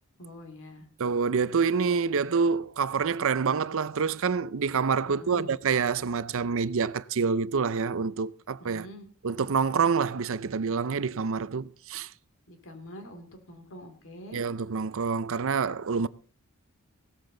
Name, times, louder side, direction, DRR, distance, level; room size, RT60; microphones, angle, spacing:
voice 1, 0.2-0.9 5.1-5.6 8.6-9.1 12.5-14.4, equal, 65° left, 2.7 m, -45 dB
voice 2, 1.0-8.9 9.2-12.1 14.3-16.1, right 5 dB, 65° right, 0.6 m, -27 dB
16.5 x 13.5 x 3.9 m
head